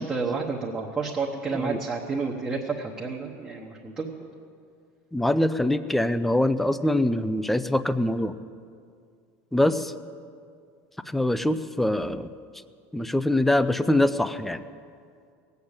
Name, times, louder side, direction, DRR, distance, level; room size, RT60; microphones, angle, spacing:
voice 1, 0.0-4.1, right 4 dB, 15° right, -2 dB, 1.0 m, -30 dB
voice 2, 1.5-1.8 5.1-8.3 9.5-9.9 11.1-12.3 12.9-14.6, left 1 dB, 5° left, 13 dB, 0.4 m, -24 dB
19.0 x 8.2 x 8.7 m, 2.3 s
cardioid pair, 170°, 7 cm